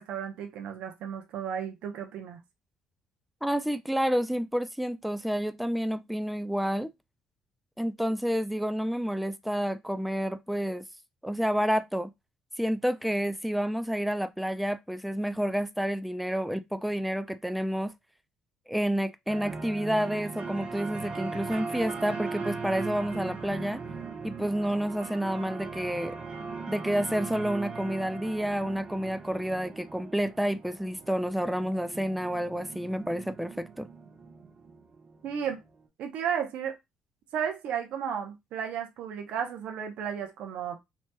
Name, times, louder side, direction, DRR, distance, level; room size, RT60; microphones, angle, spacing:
voice 1, 0.0-2.4 35.2-35.6 36.0-36.7 37.3-40.8, right 8 dB, 70° right, 0.7 m, -33 dB
voice 2, 3.4-6.9 7.8-10.8 11.2-12.1 12.6-17.9 18.7-23.8 24.2-26.2 26.7-33.9, equal, ahead, 0.3 m, -29 dB
sound 1, 19.3-35.6, right 4 dB, 45° right, 1.0 m, -39 dB
3.0 x 2.7 x 2.2 m
cardioid pair, 95°, 2 cm